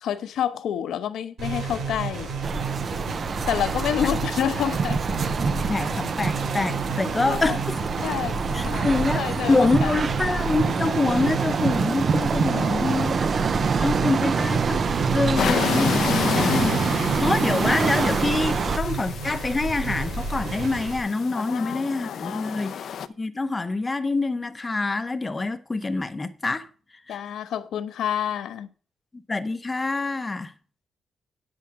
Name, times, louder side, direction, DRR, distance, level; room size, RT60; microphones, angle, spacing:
voice 1, 0.0-2.3 3.5-5.2 7.3-7.6 8.0-9.9 12.5-13.1 21.3-22.8 27.1-28.7, left 9 dB, 75° left, 0.9 m, -29 dB
sound 1, 1.4-21.0, right 3 dB, 55° right, 4.6 m, -31 dB
sound 2, 2.4-18.8, right 5 dB, 35° right, 0.4 m, -26 dB
voice 2, 5.7-7.6 8.5-13.1 13.8-16.8 17.2-22.9 23.2-26.7 27.1-27.2 29.3-30.5, left 3 dB, 15° left, 0.7 m, -26 dB
sound 3, 15.4-23.1, left 8 dB, 55° left, 0.6 m, -30 dB
9.6 x 7.7 x 4.7 m
wide cardioid pair, 170°, 0 cm